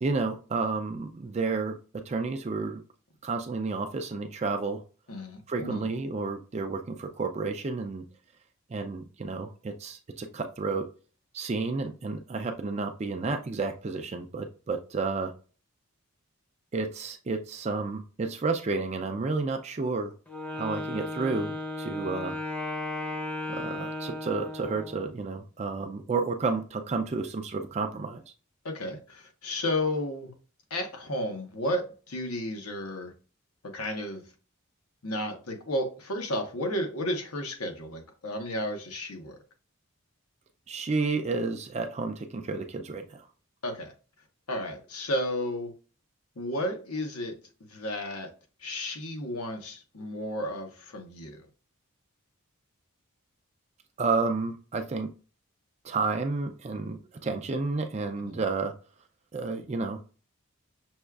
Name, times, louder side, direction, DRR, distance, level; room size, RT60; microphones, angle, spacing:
voice 1, 0.0-1.8 2.1-2.8 3.2-4.8 5.5-8.0 8.7-10.8 11.3-15.3 16.7-20.1 20.5-22.4 23.5-28.2 40.7-43.3 54.0-55.1 55.8-58.7 59.3-60.0, right 3 dB, 30° right, 0.3 m, -31 dB
voice 2, 5.1-5.9 28.6-30.3 30.7-33.1 33.6-34.2 35.0-39.4 43.6-43.9 44.5-45.7 46.4-47.4 47.7-48.3 48.6-51.5 58.2-58.4, left 1 dB, 85° left, 1.0 m, -33 dB
Wind instrument woodwind instrument, 20.3-25.1, left 2 dB, 10° left, 0.6 m, -35 dB
6.1 x 2.3 x 2.3 m
head